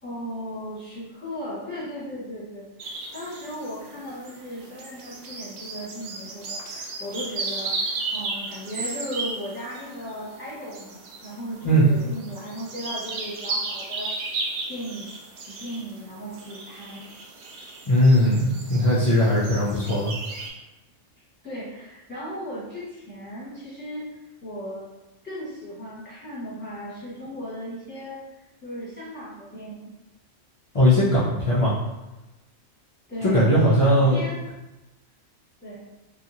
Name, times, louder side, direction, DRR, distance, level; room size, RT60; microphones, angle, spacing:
voice 1, 0.0-14.1 14.7-15.2 15.5-17.1 19.3-19.8 21.4-24.0 24.4-24.9 25.2-29.9 33.1-33.5 33.8-34.4 35.6-35.8, equal, 10° left, -9 dB, 1.0 m, -36 dB
sound 1, 2.8-20.5, right 3 dB, 65° right, 0.6 m, -35 dB
voice 2, 17.9-20.1 30.7-31.7 33.2-34.2, equal, 55° left, -9 dB, 0.3 m, -19 dB
2.9 x 2.4 x 2.6 m, 0.99 s
omnidirectional pair, 1.3 m